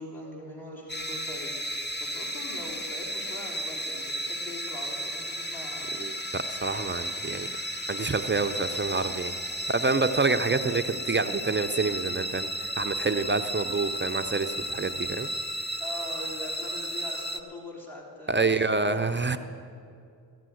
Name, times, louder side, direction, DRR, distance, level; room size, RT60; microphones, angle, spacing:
voice 1, 0.0-6.0 15.8-18.6 18.9-19.2, left 1 dB, 50° left, -2 dB, 3.3 m, -41 dB
sound 1, 0.9-17.4, equal, 25° left, 1.0 m, -34 dB
voice 2, 6.0-7.5 7.9-9.3 9.7-15.3 18.3-19.4, right 4 dB, 25° right, 8 dB, 0.6 m, -27 dB
16.0 x 7.6 x 7.7 m, 2.4 s
supercardioid pair, 40°, 46 cm